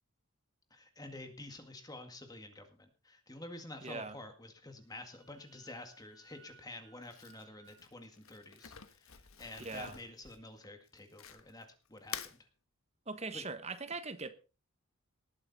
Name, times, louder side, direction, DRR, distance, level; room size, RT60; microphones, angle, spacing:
voice 1, 0.7-12.4 13.3-13.5, left 2 dB, 20° left, 1.9 m, -49 dB
voice 2, 3.8-4.2 9.6-10.0 13.1-14.3, right 3 dB, 30° right, 1.2 m, -41 dB
Wind instrument woodwind instrument, 4.8-7.8, right 6 dB, ahead, 4.4 m, -63 dB
Crumpling crinkling, 7.0-11.6 12.0-12.4, left 8 dB, 75° left, 1.3 m, -48 dB
19.0 x 8.8 x 4.1 m
head